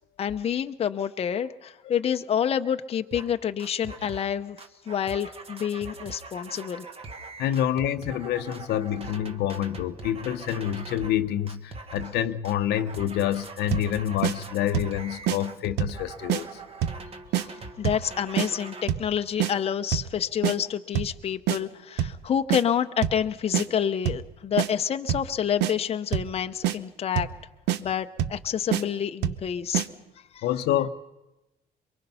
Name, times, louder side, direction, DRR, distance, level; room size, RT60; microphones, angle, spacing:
voice 1, 0.2-4.6 4.9-6.9 17.4-27.3 27.8-29.9 30.3-30.4, left 8 dB, 35° left, 8 dB, 0.7 m, -28 dB
sound 1, 3.1-3.3 3.6-4.3 4.6-11.2 11.5-12.2 12.4-18.8, right 3 dB, 35° right, 1.4 m, -42 dB
voice 2, 7.4-16.5 30.4-30.9, left 11 dB, 75° left, 10 dB, 0.8 m, -27 dB
sound 2, 13.7-13.9 14.2-14.4 14.7-15.0 15.3-15.4 15.8-16.0 16.3-16.4 16.8-17.0 17.3-17.5 17.8-18.1 18.4-18.5 18.9-19.1 19.4-19.5 19.9-20.1 20.4-20.6 20.9-21.2 21.5-21.6 22.0-22.2 22.5-22.6 23.0-23.2 23.5-23.7 24.1-24.3 24.6-24.7 25.1-25.3 25.6-25.7 26.1-26.3 26.6-26.8 27.2-27.4 27.7-27.8 28.2-28.4 28.7-28.8 29.2-29.4 29.7-29.9, right 11 dB, 85° right, 0.8 m, -25 dB
23.5 x 23.0 x 5.6 m, 1.0 s
cardioid pair, 110°, 17 cm